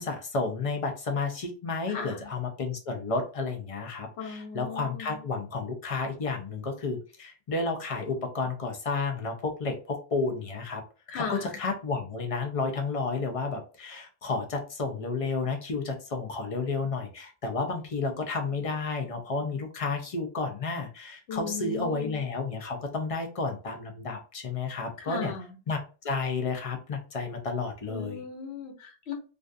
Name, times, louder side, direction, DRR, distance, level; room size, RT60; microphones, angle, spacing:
voice 1, 0.0-10.8 11.1-25.3 25.7-28.2, left 3 dB, 45° left, 4 dB, 0.5 m, -31 dB
voice 2, 1.9-2.3 4.2-5.2 11.1-11.6 21.3-22.2 25.0-25.6 27.9-29.1, left 6 dB, 85° left, 3 dB, 1.0 m, -37 dB
2.4 x 2.3 x 2.4 m, 0.35 s
omnidirectional pair, 1.1 m